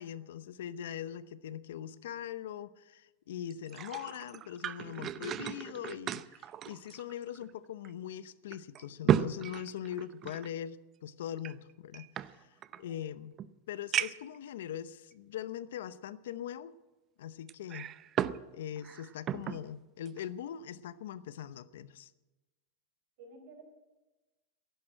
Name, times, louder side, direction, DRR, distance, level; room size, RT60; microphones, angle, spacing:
voice 1, 0.0-12.5 12.8-13.3 13.7-16.7 17.2-17.9 18.5-22.1, left 10 dB, 80° left, 15 dB, 0.7 m, -41 dB
sound 1, 3.5-7.5 7.8-7.9 8.5-10.5 11.4-12.8 13.4-13.5 13.9-14.4 15.1-15.2 17.5-18.4 18.8-19.6 20.1-20.3, right 10 dB, 35° right, 0.5 m, -34 dB
voice 2, 12.6-13.0 23.2-23.6, right 3 dB, 65° right, 3 dB, 4.7 m, -53 dB
12.0 x 11.0 x 8.9 m, 1.1 s
supercardioid pair, 130°, 0 cm